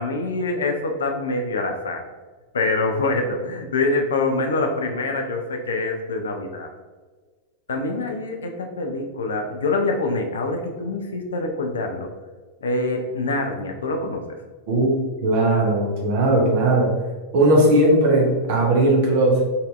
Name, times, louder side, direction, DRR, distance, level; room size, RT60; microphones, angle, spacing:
voice 1, 0.0-2.0 2.5-6.7 7.7-12.1 12.6-14.2, left 2 dB, 65° left, 3 dB, 0.4 m, -25 dB
voice 2, 15.2-16.9 17.3-19.4, right 1 dB, 50° right, -1 dB, 0.7 m, -18 dB
4.0 x 2.6 x 2.3 m, 1.4 s
figure-of-eight pair, 90°, 0 cm